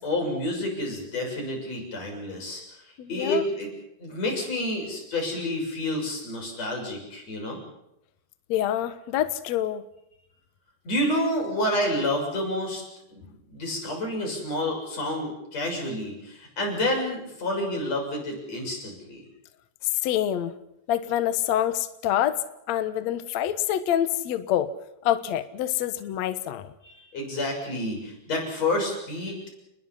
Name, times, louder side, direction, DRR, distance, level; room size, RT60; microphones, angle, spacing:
voice 1, 0.0-2.6 3.1-3.7 4.0-7.6 10.8-12.8 13.1-19.3 26.8-29.4, left 1 dB, 40° left, 1 dB, 7.7 m, -29 dB
voice 2, 3.0-3.4 8.5-9.9 19.9-20.6 20.9-22.4 22.7-24.7 25.0-26.7, left 11 dB, 80° left, 11 dB, 1.6 m, -26 dB
29.5 x 20.5 x 5.7 m, 0.85 s
omnidirectional pair, 4.9 m